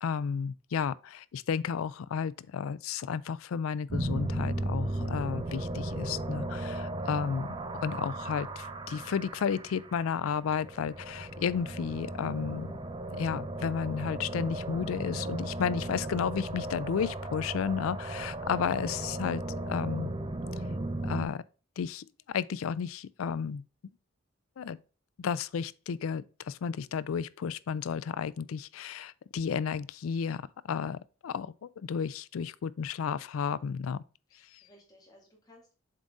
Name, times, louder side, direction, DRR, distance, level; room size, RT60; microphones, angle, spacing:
voice 1, 0.0-7.5 7.8-12.8 13.1-19.4 19.7-20.1 21.0-21.4 21.8-22.0 22.3-23.6 24.6-24.8 25.2-30.4 30.7-34.0, left 6 dB, 75° left, 0.4 m, -32 dB
sound 1, 3.9-21.3, right 1 dB, 20° right, 0.5 m, -36 dB
voice 2, 18.2-18.5 34.3-35.7, left 1 dB, 20° left, 2.1 m, -60 dB
7.5 x 3.9 x 3.5 m
head